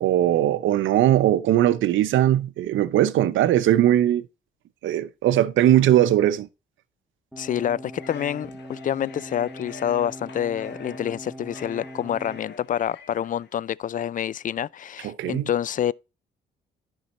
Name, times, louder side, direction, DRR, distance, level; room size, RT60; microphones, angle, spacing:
voice 1, 0.0-4.2 4.8-6.5 15.0-15.5, right 12 dB, 75° right, 0.7 m, -20 dB
sound 1, 7.3-12.4, right 1 dB, 5° right, 1.5 m, -41 dB
voice 2, 7.4-15.9, left 10 dB, 45° left, 0.4 m, -27 dB
sound 2, 8.0-13.6, left 5 dB, 60° left, 1.4 m, -46 dB
10.5 x 5.5 x 4.1 m
cardioid pair, 90°, 20 cm